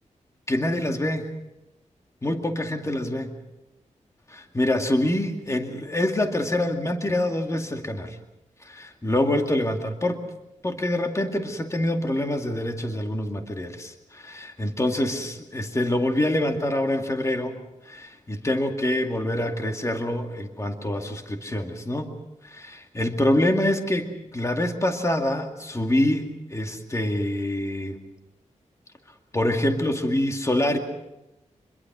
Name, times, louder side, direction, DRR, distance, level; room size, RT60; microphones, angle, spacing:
voice 1, 0.5-1.3 2.2-3.3 4.3-8.2 8.6-10.2 10.6-17.5 17.8-22.1 22.4-28.0 29.3-30.8, left 1 dB, 25° left, 4 dB, 2.3 m, -25 dB
27.0 x 22.0 x 6.1 m, 0.95 s
wide cardioid pair, 95°, 13 cm